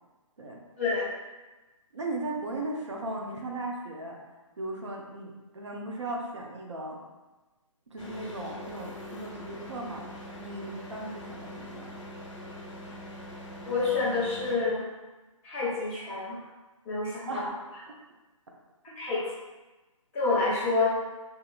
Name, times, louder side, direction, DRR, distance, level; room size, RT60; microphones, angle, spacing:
voice 1, 0.8-1.1 13.6-14.9 15.4-16.4 16.8-17.5 18.8-19.3 20.1-20.9, left 3 dB, 15° left, -8 dB, 0.7 m, -28 dB
voice 2, 1.9-4.2 4.6-7.0 7.9-10.1 10.4-11.9 17.3-17.5 18.9-19.0 20.4-20.5, right 2 dB, 60° right, -1 dB, 0.6 m, -37 dB
sound 1, 8.0-14.6, left 1 dB, 60° left, 0.9 m, -43 dB
3.7 x 2.8 x 2.3 m, 1.1 s
figure-of-eight pair, 140°, 17 cm